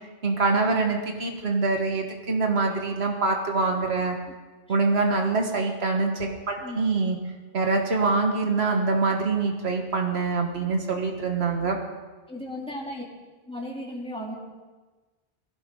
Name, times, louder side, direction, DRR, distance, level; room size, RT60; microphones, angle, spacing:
voice 1, 0.2-4.2 4.7-7.2 7.5-11.8, right 3 dB, 85° right, 2 dB, 1.8 m, -25 dB
voice 2, 6.6-6.9 12.3-13.0 13.5-14.4, left 1 dB, 5° left, -3 dB, 3.0 m, -35 dB
19.5 x 16.5 x 3.8 m, 1.3 s
omnidirectional pair, 1.1 m